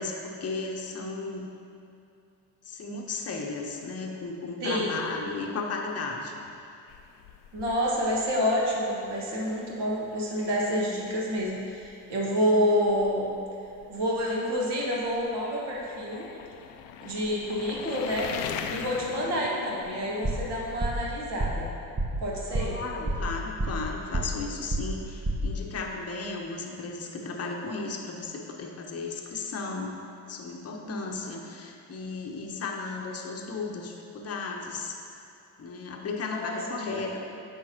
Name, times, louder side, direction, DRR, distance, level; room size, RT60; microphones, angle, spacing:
voice 1, 0.0-1.5 2.6-6.4 22.5-29.9 30.3-35.0 35.6-37.2, left 3 dB, 30° left, 1 dB, 0.9 m, -35 dB
voice 2, 4.6-4.9 7.5-13.3 13.9-16.2 17.0-18.3 18.7-21.7 22.2-22.8 30.8-31.2 36.3-36.6 36.9-37.1, equal, 55° right, -4 dB, 1.5 m, -28 dB
sound 1, 6.9-20.9, left 8 dB, 60° left, 0.5 m, -43 dB
sound 2, 20.2-20.5 20.8-21.1 21.4-21.7 22.0-22.2 22.5-22.8 23.1-23.9 24.1-24.4 24.7-25.0 25.2-25.5, right 1 dB, 15° right, 0.9 m, -28 dB
8.6 x 5.6 x 2.8 m, 2.7 s
figure-of-eight pair, 45°, 49 cm